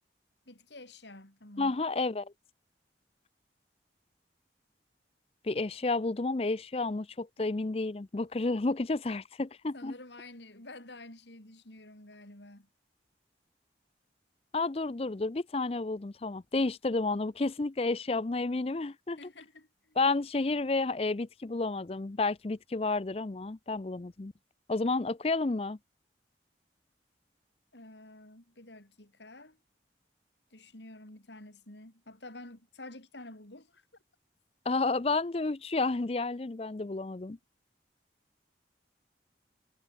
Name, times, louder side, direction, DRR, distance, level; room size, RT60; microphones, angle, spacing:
voice 1, 0.5-1.8 7.4-7.5 9.7-12.7 19.2-20.0 27.7-29.6 30.5-33.8, left 2 dB, 75° left, 4.8 m, -49 dB
voice 2, 1.6-2.3 5.4-9.9 14.5-19.2 20.0-24.3 24.7-25.8 34.7-37.4, left 3 dB, 35° left, 0.5 m, -31 dB
head